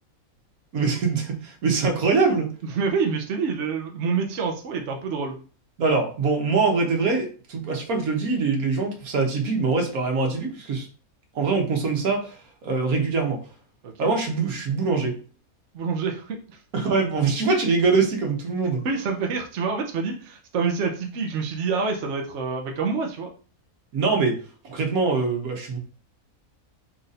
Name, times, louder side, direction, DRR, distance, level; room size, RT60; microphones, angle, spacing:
voice 1, 0.7-2.5 5.8-10.9 11.3-13.4 14.0-15.2 16.7-18.8 23.9-25.8, right 4 dB, 80° right, 2 dB, 1.5 m, -23 dB
voice 2, 2.6-5.3 13.8-14.1 15.7-16.6 18.8-23.3, right 5 dB, 60° right, 1 dB, 1.0 m, -27 dB
4.3 x 2.6 x 4.0 m, 0.39 s
omnidirectional pair, 1.5 m